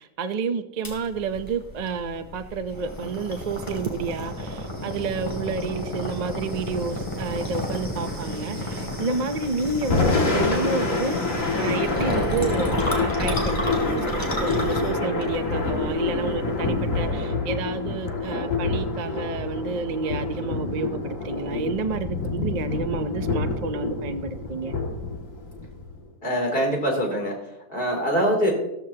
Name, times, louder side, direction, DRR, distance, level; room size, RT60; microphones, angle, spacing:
voice 1, 0.0-24.7, right 4 dB, 45° right, 8 dB, 0.5 m, -30 dB
sound 1, 0.8-17.1, equal, 15° left, 2.7 m, -32 dB
Thunder / Rain, 9.8-26.0, left 3 dB, 55° left, 2.6 m, -27 dB
voice 2, 26.2-28.5, equal, 35° left, 0 dB, 3.3 m, -24 dB
15.0 x 14.0 x 2.9 m, 0.91 s
omnidirectional pair, 1.6 m